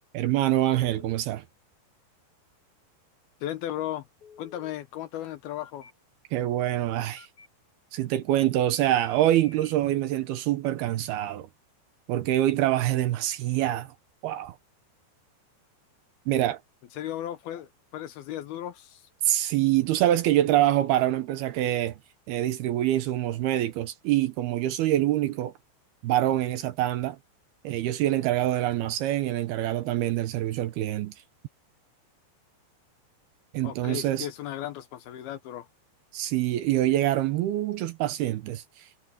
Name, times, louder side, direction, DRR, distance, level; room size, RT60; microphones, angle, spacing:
voice 1, 0.1-1.4 6.3-7.3 7.9-11.5 12.1-13.9 14.2-14.6 16.3-16.6 19.2-22.0 22.3-25.5 26.0-27.2 27.6-31.1 33.5-34.3 36.1-39.0, right 13 dB, 75° right, 2.6 m, -25 dB
Telephone, 0.7-1.2 4.2-4.7 5.6-5.9 7.2-7.5 8.7-9.7, left 5 dB, 30° left, 7.6 m, -51 dB
voice 2, 3.4-4.1 4.4-5.9 17.0-19.1 33.6-35.7, left 12 dB, 75° left, 2.6 m, -35 dB
omnidirectional pair, 5.0 m